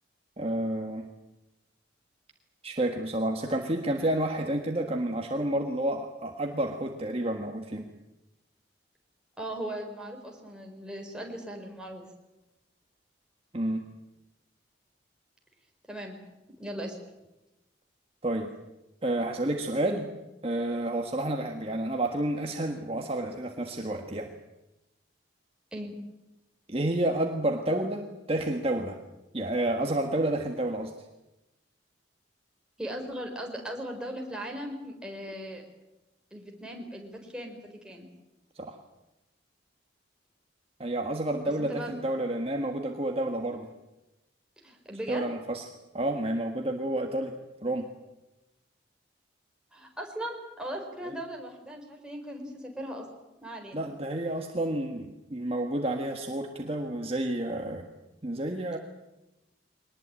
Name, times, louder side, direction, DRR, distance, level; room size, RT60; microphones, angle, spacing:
voice 1, 0.4-1.1 2.6-7.9 13.5-13.8 18.2-18.5 19.0-20.1 20.4-24.3 26.7-29.0 29.3-30.9 38.5-38.8 40.8-43.7 45.1-45.6 45.9-47.3 47.6-47.9 51.0-51.2 53.7-57.9 58.2-58.8, right 1 dB, 30° right, 3 dB, 1.6 m, -30 dB
voice 2, 9.4-12.0 15.9-16.2 16.6-17.0 25.7-25.9 32.8-35.6 36.3-38.1 41.4-42.0 44.6-45.2 49.7-53.1 53.4-53.9, right 1 dB, 5° right, 1 dB, 4.5 m, -38 dB
23.0 x 20.0 x 8.9 m, 0.98 s
head